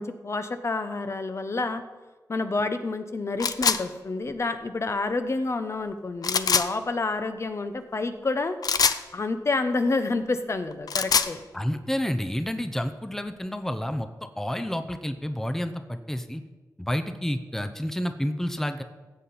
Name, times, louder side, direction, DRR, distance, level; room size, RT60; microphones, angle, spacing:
voice 1, 0.0-1.8 2.3-8.6 9.1-11.4, left 3 dB, 40° left, 9 dB, 0.9 m, -28 dB
sound 1, 3.4-3.8 6.2-6.7 8.6-9.0 10.7-11.3, left 6 dB, 65° left, 0.6 m, -23 dB
voice 2, 11.5-14.1 14.4-16.4 16.8-18.8, equal, 5° left, 8 dB, 0.7 m, -29 dB
15.5 x 7.8 x 4.2 m, 1.3 s
cardioid pair, 75°, 7 cm